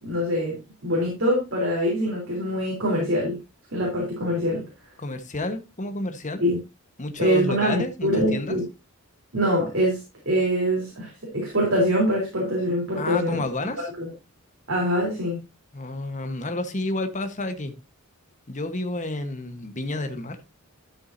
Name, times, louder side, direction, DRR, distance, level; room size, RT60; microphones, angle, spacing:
voice 1, 0.0-3.4 3.7-4.6 6.4-6.6 7.2-8.7 9.3-10.0 10.3-13.4 14.0-14.1 14.7-15.4, equal, 60° right, 3.7 m, -24 dB
voice 2, 5.0-6.4 7.0-8.6 13.0-13.9 15.7-17.7 18.5-20.4, left 2 dB, 35° left, 1.3 m, -30 dB
12.5 x 7.2 x 2.7 m
head